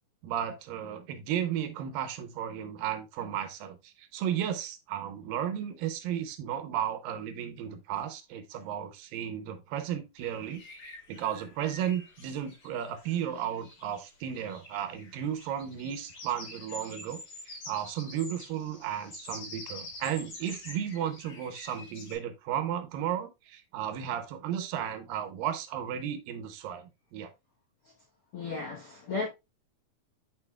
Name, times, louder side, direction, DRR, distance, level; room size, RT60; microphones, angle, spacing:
voice 1, 0.2-17.2 17.5-27.3, right 9 dB, 75° right, 2.4 m, -34 dB
sound 1, 10.2-22.2, left 2 dB, 60° left, 5.2 m, -47 dB
voice 2, 28.3-29.3, left 4 dB, 85° left, 1.2 m, -34 dB
9.9 x 4.9 x 2.3 m
omnidirectional pair, 4.2 m